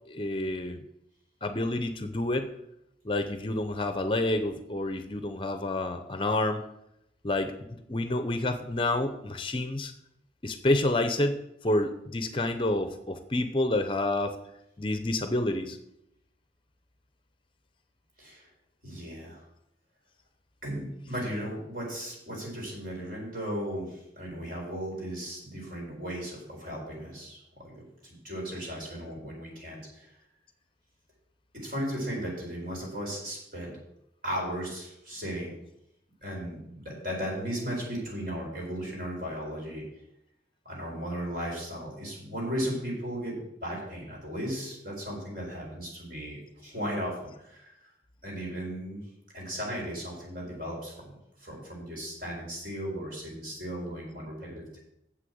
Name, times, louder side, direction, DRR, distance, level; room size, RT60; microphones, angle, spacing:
voice 1, 0.1-0.8 1.4-2.5 3.0-6.6 7.2-9.9 10.4-14.4 14.8-15.8, left 1 dB, 30° left, 8 dB, 0.6 m, -29 dB
voice 2, 18.8-19.4 20.6-30.1 31.6-33.8 34.2-35.6 36.2-39.8 40.6-47.9 48.2-49.0 49.3-54.8, equal, 55° right, -2 dB, 4.5 m, -36 dB
7.8 x 6.4 x 7.9 m, 0.81 s
head